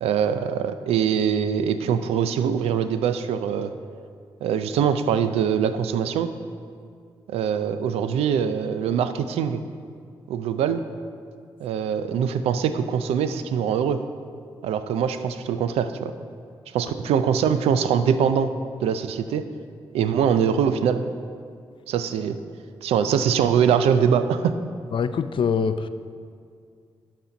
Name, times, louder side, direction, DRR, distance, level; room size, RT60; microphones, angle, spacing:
voice 1, 0.0-3.7 4.4-6.3 7.3-9.6 10.3-10.8 11.6-14.0 14.6-16.1 16.7-18.5 18.8-19.4 19.9-21.0 21.9-22.4 22.8-24.6, right 7 dB, 90° right, 10 dB, 0.4 m, -23 dB
voice 2, 24.9-25.9, left 6 dB, 55° left, 12 dB, 0.4 m, -24 dB
12.0 x 4.2 x 5.1 m, 2.2 s
supercardioid pair, 50°, 10 cm